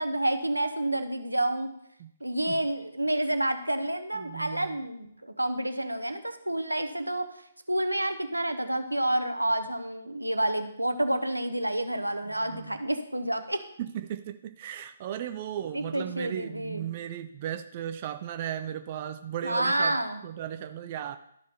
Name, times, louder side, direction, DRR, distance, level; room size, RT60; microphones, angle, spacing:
voice 1, 0.0-1.7 2.2-7.3 7.7-13.6 15.7-16.9 19.4-20.2, right 1 dB, 85° right, 8 dB, 0.8 m, -29 dB
voice 2, 4.1-4.8 12.4-12.8 13.8-21.2, right 10 dB, 35° right, 9 dB, 0.4 m, -36 dB
12.5 x 4.2 x 4.1 m, 0.72 s
figure-of-eight pair, 135°, 0 cm